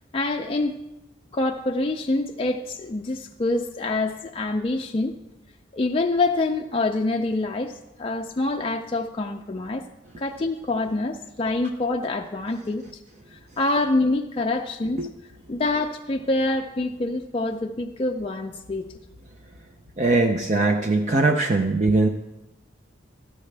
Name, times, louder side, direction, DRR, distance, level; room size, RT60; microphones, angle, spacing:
voice 1, 0.1-0.8 1.3-5.2 5.7-9.8 10.2-12.8 13.3-15.1 15.5-18.9, left 2 dB, 30° left, 1 dB, 0.4 m, -26 dB
voice 2, 20.0-22.1, right 2 dB, 35° right, 3 dB, 0.5 m, -20 dB
13.5 x 9.5 x 3.3 m, 0.96 s
head